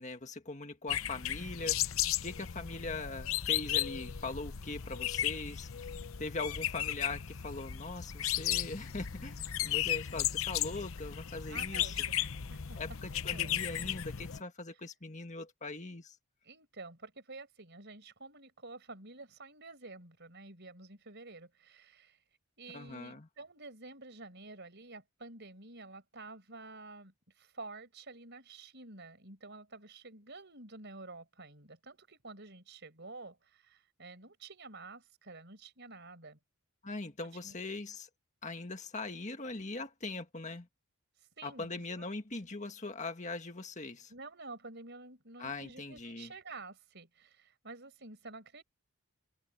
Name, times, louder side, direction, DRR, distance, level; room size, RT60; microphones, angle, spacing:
voice 1, 0.0-5.9 6.2-11.9 12.8-16.2 22.7-23.3 36.8-38.1 38.4-40.7 41.4-44.1 45.4-46.3, left 3 dB, 30° left, 1.8 m, -41 dB
sound 1, 0.9-14.4, left 11 dB, 65° left, 0.8 m, -35 dB
voice 2, 11.5-12.8 13.3-13.5 16.4-22.2 22.6-36.4 37.4-37.6 41.2-42.1 44.1-48.6, right 3 dB, 50° right, 5.2 m, -50 dB
head